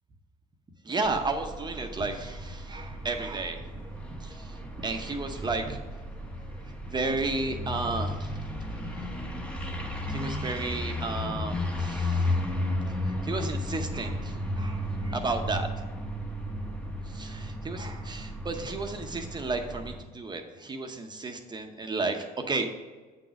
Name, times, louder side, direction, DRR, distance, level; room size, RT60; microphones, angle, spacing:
voice 1, 0.8-3.6 4.2-5.8 6.9-8.3 10.1-12.3 13.2-15.7 17.1-22.7, right 3 dB, 25° right, 4 dB, 0.8 m, -33 dB
sound 1, 1.0-20.0, left 1 dB, 5° left, 1.0 m, -34 dB
8.2 x 4.0 x 5.9 m, 1.4 s
cardioid pair, 110°, 17 cm